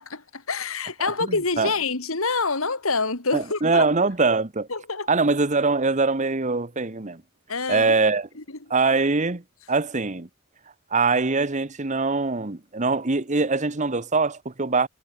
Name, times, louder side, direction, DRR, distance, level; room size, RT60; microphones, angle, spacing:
voice 1, 0.0-3.8 4.7-5.1 7.5-7.9, left 4 dB, 85° left, 3.0 m, -26 dB
voice 2, 1.2-1.7 3.3-4.7 5.1-7.2 7.7-8.3 8.7-9.4 9.7-10.3 10.9-14.9, right 3 dB, 35° right, 1.2 m, -23 dB
head